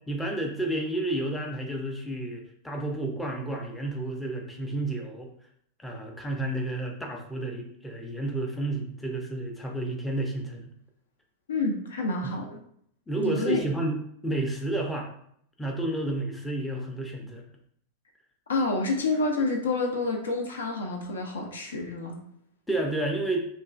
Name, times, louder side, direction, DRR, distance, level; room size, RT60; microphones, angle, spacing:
voice 1, 0.1-5.3 5.8-10.7 12.2-12.3 13.1-14.0 14.2-15.1 15.6-17.4 22.7-23.5, right 2 dB, 5° left, 0 dB, 0.5 m, -31 dB
voice 2, 11.5-12.6 13.2-13.7 18.5-22.2, left 3 dB, 70° left, 2 dB, 0.4 m, -28 dB
3.0 x 2.3 x 2.4 m, 0.67 s
figure-of-eight pair, 90°, 0 cm